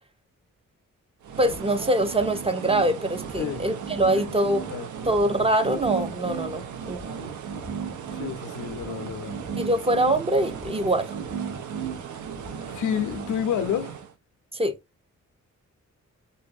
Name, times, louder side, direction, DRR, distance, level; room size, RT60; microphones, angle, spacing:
sound 1, 1.2-14.1, right 8 dB, 80° right, 0.5 m, -38 dB
sound 2, 1.3-13.8, right 6 dB, 60° right, 1.0 m, -37 dB
voice 1, 1.4-4.6 5.0-7.0 9.6-11.2 14.5-14.8, right 1 dB, 20° right, 0.4 m, -24 dB
voice 2, 4.1-4.4 4.7-4.9 6.5-6.6 8.1-9.4 12.6-14.0, left 9 dB, 90° left, 0.5 m, -30 dB
2.5 x 2.2 x 2.5 m
cardioid pair, 75°, 30 cm